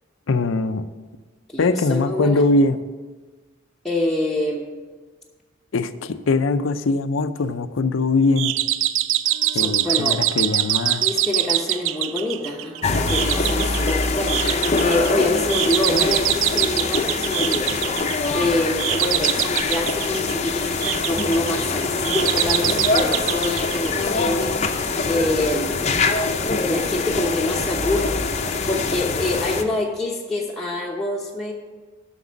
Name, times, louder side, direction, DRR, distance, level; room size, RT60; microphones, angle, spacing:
voice 1, 0.3-0.8 1.6-2.8 5.7-8.5 9.5-11.0, left 3 dB, 85° left, 11 dB, 0.6 m, -21 dB
voice 2, 1.5-2.4 3.8-4.7 9.5-10.2 11.0-12.8 13.1-18.0 18.3-24.5 25.0-25.8 26.6-31.5, left 2 dB, ahead, -4 dB, 0.9 m, -26 dB
sound 1, 7.3-7.6 9.2-22.1, equal, 25° right, 2.6 m, -47 dB
sound 2, 8.4-24.5, right 14 dB, 80° right, 0.4 m, -24 dB
sound 3, 12.8-29.6, left 3 dB, 35° left, 0.6 m, -24 dB
7.9 x 6.1 x 7.3 m, 1.3 s
head